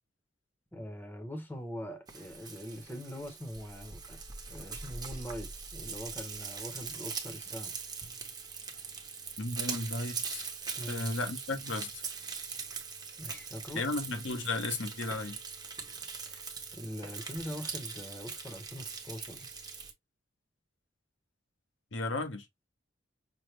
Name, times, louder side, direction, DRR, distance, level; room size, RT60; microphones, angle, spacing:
voice 1, 0.7-4.2 4.5-7.8 10.8-11.1 13.2-13.8 16.2-19.5, equal, 10° left, 0.8 m, -42 dB
Frying (food), 2.1-19.9, right 5 dB, 20° right, 0.8 m, -41 dB
voice 2, 9.4-10.4 10.9-11.9 13.7-15.4 21.9-22.4, left 2 dB, 80° left, 0.9 m, -34 dB
5.7 x 2.1 x 3.2 m
head